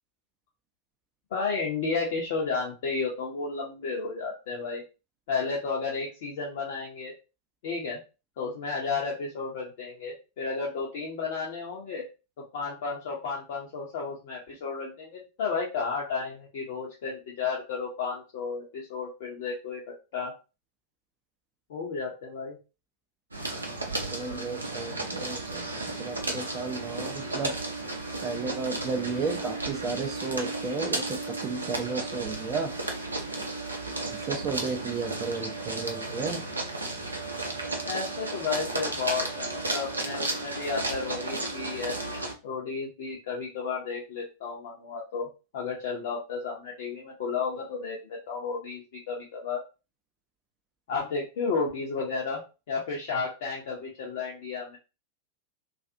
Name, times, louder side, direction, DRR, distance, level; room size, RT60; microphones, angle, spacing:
voice 1, 1.3-4.8 5.3-7.1 7.6-8.0 8.4-12.0 12.5-19.8 20.1-20.3 21.7-22.6 37.8-42.0 42.4-45.3 45.5-48.0 48.3-49.6 50.9-52.4 52.7-54.8, left 4 dB, 55° left, -2 dB, 0.6 m, -32 dB
sound 1, 23.3-42.3, right 2 dB, 80° right, 0.5 m, -33 dB
voice 2, 24.1-27.6 28.2-32.7 34.1-36.4, right 4 dB, 30° right, 3 dB, 0.4 m, -33 dB
2.4 x 2.3 x 2.6 m, 0.31 s
figure-of-eight pair, 90°, 0 cm